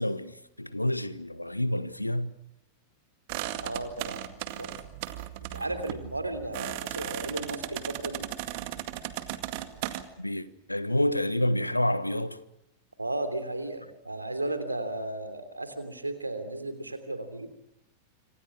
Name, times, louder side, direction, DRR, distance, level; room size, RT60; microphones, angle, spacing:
voice 1, 0.0-2.3 10.2-12.4, left 1 dB, 85° left, 1.2 m, -28 dB
sound 1, 3.3-10.0, right 14 dB, 50° right, 2.0 m, -36 dB
voice 2, 3.6-4.7 5.5-8.3 13.0-17.5, right 2 dB, 85° right, 3.2 m, -34 dB
27.0 x 26.0 x 6.2 m
figure-of-eight pair, 90°, 0 cm